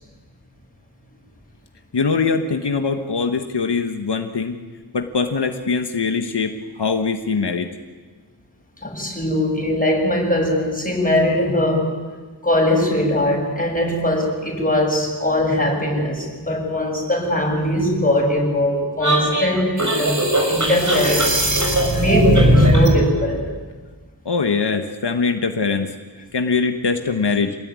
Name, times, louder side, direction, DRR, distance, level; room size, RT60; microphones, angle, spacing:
voice 1, 1.9-4.6 4.9-7.7 24.2-25.9 26.3-27.6, left 4 dB, 80° left, 6 dB, 1.5 m, -22 dB
voice 2, 8.8-11.9 12.4-21.4 21.9-23.4, left 1 dB, 20° left, 0 dB, 7.6 m, -21 dB
sound 1, 19.0-23.0, right 1 dB, 45° right, 5.9 m, -18 dB
27.5 x 20.0 x 9.7 m, 1.4 s
wide cardioid pair, 75°, 40 cm